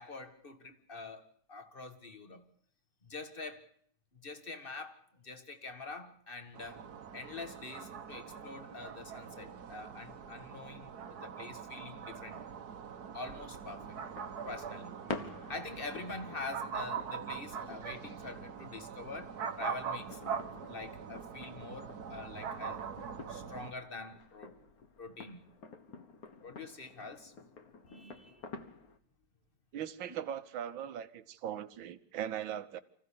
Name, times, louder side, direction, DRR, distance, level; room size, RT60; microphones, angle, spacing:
voice 1, 0.0-2.4 3.0-3.7 4.1-6.8 7.1-12.4 13.0-14.0 14.4-19.3 19.6-20.2 20.7-22.8 23.3-24.5 25.0-25.4 26.4-27.3 27.9-28.4, left 3 dB, 30° left, 1.7 m, -45 dB
sound 1, 6.5-23.7, right 7 dB, 55° right, 1.6 m, -43 dB
sound 2, 13.9-29.0, left 4 dB, 50° left, 1.7 m, -49 dB
voice 2, 29.7-32.8, right 10 dB, 70° right, 1.8 m, -39 dB
25.0 x 15.5 x 8.5 m
omnidirectional pair, 2.3 m